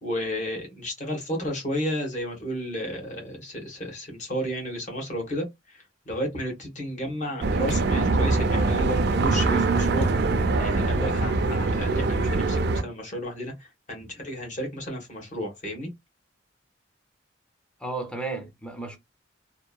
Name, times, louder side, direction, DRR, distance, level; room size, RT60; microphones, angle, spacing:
voice 1, 0.0-10.1 10.6-15.9, equal, 40° left, 1.2 m, -32 dB
sound 1, 7.4-12.8, right 3 dB, 55° right, 0.4 m, -23 dB
voice 2, 17.8-19.0, right 3 dB, 5° left, 0.5 m, -33 dB
2.8 x 2.4 x 2.2 m
head